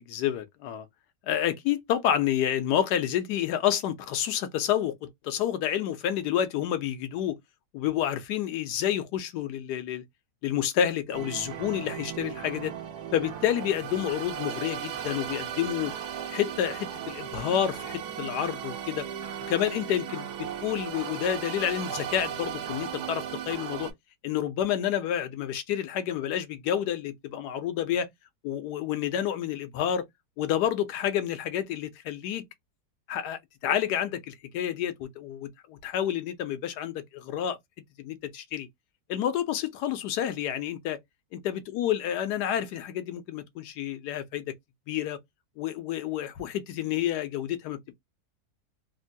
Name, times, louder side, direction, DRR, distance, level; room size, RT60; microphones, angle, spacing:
voice 1, 0.1-0.9 1.2-7.4 7.7-10.0 10.4-12.7 13.1-15.9 16.3-19.1 19.5-23.9 24.2-28.1 28.4-30.0 30.4-32.4 33.1-37.6 38.0-38.7 39.1-41.0 41.3-44.5 44.9-45.2 45.6-47.9, left 10 dB, 85° left, 1.2 m, -29 dB
sound 1, 11.1-23.9, right 9 dB, 80° right, 1.3 m, -36 dB
3.3 x 2.1 x 2.6 m
omnidirectional pair, 1.7 m